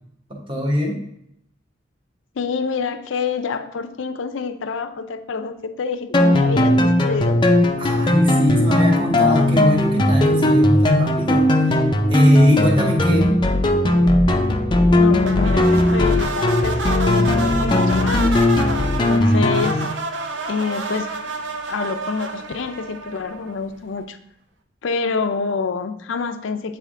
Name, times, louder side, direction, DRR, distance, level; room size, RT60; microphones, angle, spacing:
voice 1, 0.3-1.0 7.8-11.8 12.1-13.4, equal, 25° right, -1 dB, 1.1 m, -20 dB
voice 2, 2.4-7.4 15.0-18.4 19.1-19.8 20.5-21.1 21.7-24.2 24.8-26.8, left 4 dB, 85° left, 9 dB, 0.5 m, -27 dB
sound 1, 6.1-19.9, left 1 dB, 25° left, 0.5 m, -17 dB
sound 2, 15.2-23.7, right 3 dB, 65° right, 0.6 m, -29 dB
8.2 x 3.3 x 3.6 m, 0.75 s
head